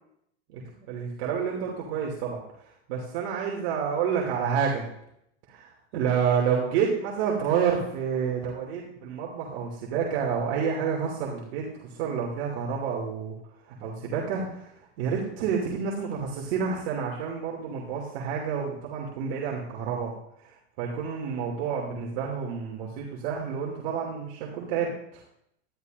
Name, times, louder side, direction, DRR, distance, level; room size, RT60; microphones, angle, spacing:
voice 1, 0.5-2.4 2.9-4.9 5.5-5.6 5.9-13.3 13.7-20.1 20.4-25.2, right 6 dB, 60° right, -2 dB, 2.8 m, -29 dB
15.5 x 13.0 x 2.7 m, 0.73 s
supercardioid pair, 120°, 32 cm